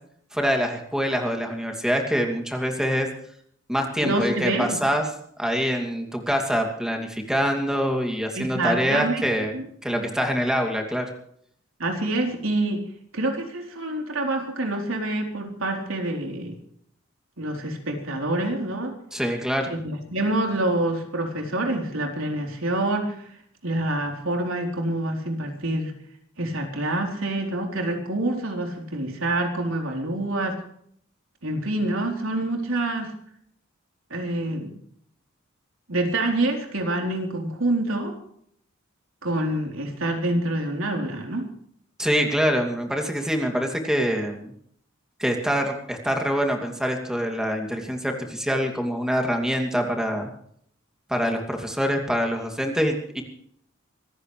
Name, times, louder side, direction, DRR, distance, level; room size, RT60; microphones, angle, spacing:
voice 1, 0.3-3.1 3.7-5.1 5.4-9.5 9.8-11.1 19.1-19.7 42.0-44.5 45.2-50.3 51.1-53.2, equal, 5° right, 2 dB, 2.7 m, -25 dB
voice 2, 4.0-4.8 8.4-9.2 9.5-10.1 11.8-12.9 13.1-16.6 17.4-18.9 19.7-23.2 23.6-25.9 26.4-30.6 31.4-33.1 34.1-34.8 35.9-38.2 39.2-41.5, right 1 dB, 90° right, 2 dB, 3.9 m, -26 dB
25.5 x 15.0 x 3.3 m, 0.65 s
head